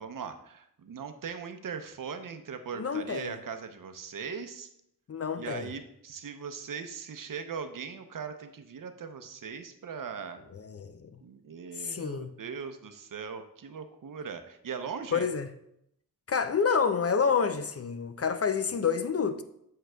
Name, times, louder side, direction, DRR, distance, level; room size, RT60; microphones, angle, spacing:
voice 1, 0.0-4.7 5.4-10.4 11.2-15.3, right 6 dB, 60° right, 0.8 m, -39 dB
voice 2, 2.7-3.3 5.1-5.7 10.5-11.1 11.8-12.3 15.1-15.5 16.3-19.4, left 6 dB, 40° left, 0.5 m, -28 dB
9.2 x 7.6 x 2.3 m
wide cardioid pair, 100°, 37 cm